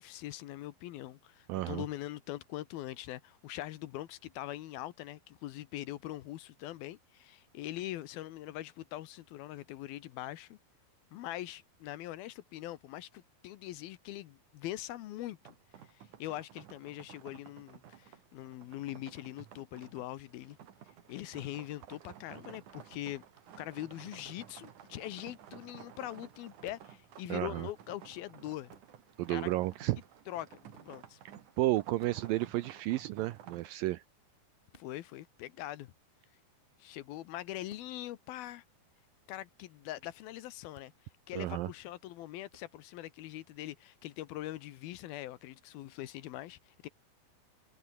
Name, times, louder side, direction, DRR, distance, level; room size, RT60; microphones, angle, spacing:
voice 1, 0.0-10.6 11.1-15.6 15.8-20.6 21.1-23.2 23.6-28.7 29.3-29.5 30.3-31.2 34.8-35.9 36.8-38.6 39.3-40.9 41.3-46.9, left 15 dB, 75° left, 2.7 m, -42 dB
voice 2, 1.5-1.8 27.3-27.7 29.2-30.0 31.6-34.0 41.4-41.7, right 17 dB, 80° right, 2.1 m, -32 dB
sound 1, 15.4-33.7, right 9 dB, 55° right, 3.1 m, -54 dB
sound 2, 24.2-24.5 26.6-27.0 28.7-28.9 30.7-31.0 32.0-32.3 34.7-34.9 37.7-37.9 40.7-41.0 42.5-42.7, left 2 dB, 15° left, 4.3 m, -59 dB
omnidirectional pair, 4.7 m